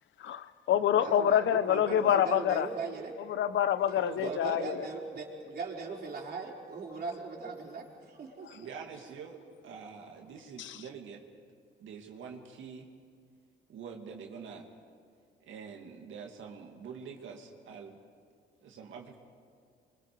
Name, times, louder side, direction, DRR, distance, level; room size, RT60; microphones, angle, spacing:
voice 1, 0.2-2.7 3.3-4.9 10.6-10.8, left 10 dB, 70° left, 13 dB, 0.8 m, -27 dB
voice 2, 1.0-3.1 3.9-8.9, right 4 dB, 50° right, -2 dB, 4.5 m, -39 dB
voice 3, 4.0-4.6 8.5-11.2 11.8-12.9 13.7-14.7 15.4-18.0 18.6-19.2, right 6 dB, 75° right, 1 dB, 2.3 m, -45 dB
28.5 x 24.0 x 4.8 m, 2.1 s
cardioid pair, 90°, 20 cm